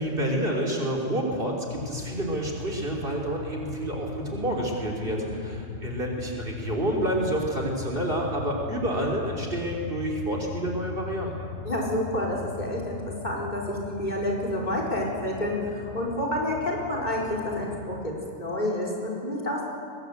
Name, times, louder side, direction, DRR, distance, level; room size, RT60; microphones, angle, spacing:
voice 1, 0.0-11.5, right 1 dB, 45° right, 0 dB, 3.7 m, -29 dB
sound 1, 1.7-18.1, left 5 dB, 60° left, 1.6 m, -39 dB
voice 2, 5.1-5.4 11.6-19.6, left 1 dB, 35° left, -1 dB, 4.6 m, -29 dB
23.0 x 20.5 x 8.1 m, 2.4 s
omnidirectional pair, 1.3 m